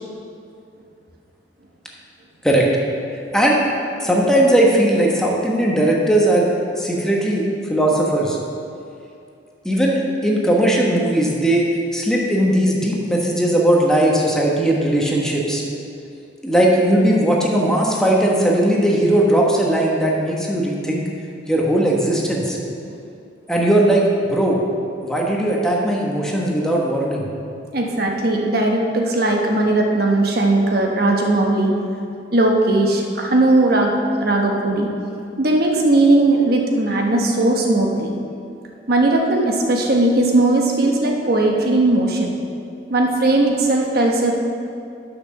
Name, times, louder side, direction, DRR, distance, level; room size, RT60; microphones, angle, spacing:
voice 1, 4.0-6.5 6.8-8.4 9.6-11.7 11.9-15.6 16.4-21.0 21.5-22.6 23.5-24.6 25.0-27.2, right 1 dB, 5° left, -3 dB, 1.3 m, -18 dB
voice 2, 27.7-31.7 32.3-33.9 34.2-34.9 35.4-38.1 38.9-42.3 42.9-44.3, right 2 dB, 55° right, 0 dB, 1.2 m, -18 dB
11.0 x 6.1 x 6.5 m, 2.5 s
head